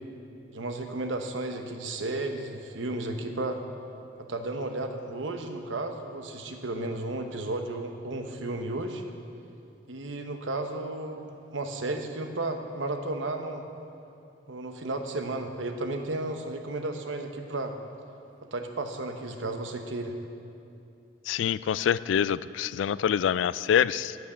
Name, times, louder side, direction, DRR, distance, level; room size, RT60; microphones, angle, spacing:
voice 1, 0.5-3.6 4.3-9.0 9.9-13.6 14.5-17.8 18.5-20.2, right 2 dB, 85° right, 5 dB, 1.0 m, -33 dB
voice 2, 21.3-24.2, left 8 dB, 75° left, 18 dB, 0.3 m, -25 dB
9.4 x 9.2 x 7.4 m, 2.7 s
head